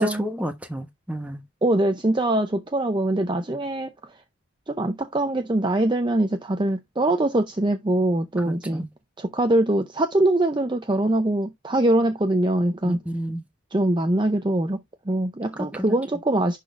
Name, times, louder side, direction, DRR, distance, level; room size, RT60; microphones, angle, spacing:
voice 1, 0.0-1.4 8.4-8.9 12.8-13.4 15.6-16.0, equal, 5° right, 1.0 m, -31 dB
voice 2, 1.6-3.9 4.7-8.8 9.2-13.0 13.7-16.6, right 1 dB, 20° right, 0.5 m, -23 dB
11.0 x 4.0 x 2.5 m
head